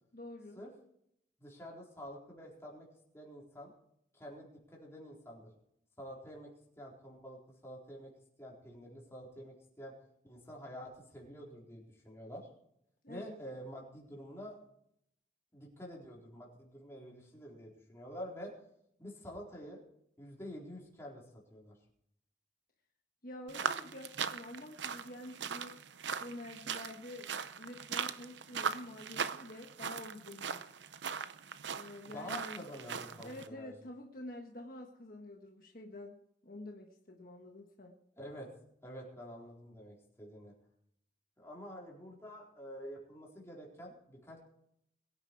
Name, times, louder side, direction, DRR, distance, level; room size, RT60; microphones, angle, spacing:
voice 1, 0.1-0.6 13.0-13.3 23.2-25.8 26.2-27.3 27.6-30.7 31.7-32.7 33.2-38.0, left 1 dB, 50° left, 1 dB, 1.4 m, -48 dB
voice 2, 1.4-2.9 3.1-3.7 4.1-5.5 6.0-6.5 6.8-8.1 8.4-9.9 10.2-12.5 13.1-14.6 15.5-18.5 19.0-19.8 20.2-21.2 21.5-21.8 32.1-33.7 38.2-38.5 38.8-40.5 41.4-44.4, equal, 15° left, -3 dB, 4.2 m, -48 dB
sound 1, 23.5-33.5, right 6 dB, 80° right, 0.7 m, -40 dB
22.0 x 9.6 x 4.8 m, 0.73 s
head